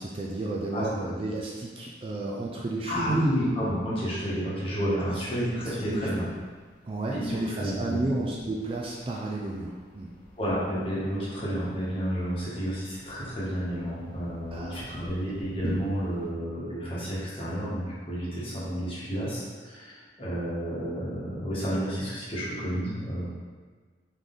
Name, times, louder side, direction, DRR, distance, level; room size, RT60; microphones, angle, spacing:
voice 1, 0.0-3.4 5.1-5.2 5.6-6.1 6.8-10.1 14.5-14.9, right 2 dB, 30° right, -2 dB, 0.3 m, -32 dB
voice 2, 2.9-6.2 7.1-8.0 10.4-23.2, equal, 30° left, -8 dB, 1.2 m, -30 dB
sound 1, 4.8-16.3, left 1 dB, 10° left, 0.9 m, -46 dB
3.7 x 3.2 x 3.8 m, 1.5 s
head